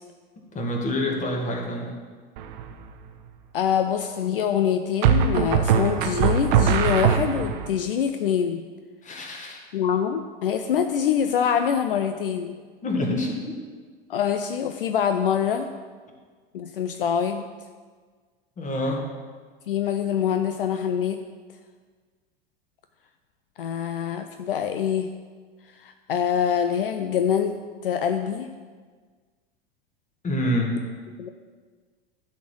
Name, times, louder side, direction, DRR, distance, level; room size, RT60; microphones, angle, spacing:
voice 1, 0.4-1.9 9.0-9.6 12.8-13.6 18.6-19.1 30.2-30.8, left 1 dB, 25° left, 1 dB, 1.8 m, -27 dB
sound 1, 2.4-2.8 5.0-7.7, right 7 dB, 50° right, 0.8 m, -21 dB
voice 2, 3.5-8.6 9.7-12.5 14.1-15.7 16.5-17.4 19.7-21.2 23.6-25.1 25.8-27.5 27.8-28.5 31.2-31.3, left 8 dB, 70° left, 8 dB, 0.5 m, -25 dB
11.5 x 4.3 x 6.2 m, 1.5 s
figure-of-eight pair, 85°, 29 cm